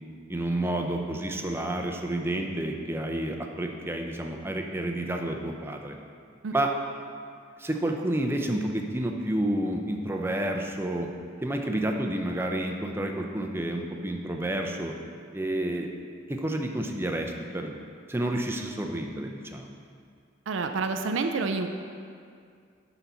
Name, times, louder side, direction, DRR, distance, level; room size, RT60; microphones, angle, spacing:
voice 1, 0.3-6.0 6.5-6.7 7.6-11.1 11.4-14.9 15.3-15.9 16.3-17.8 18.1-19.8, right 1 dB, 10° right, 2 dB, 0.5 m, -30 dB
voice 2, 20.5-21.7, right 4 dB, 65° right, 6 dB, 0.4 m, -28 dB
10.0 x 4.1 x 5.7 m, 2.3 s
head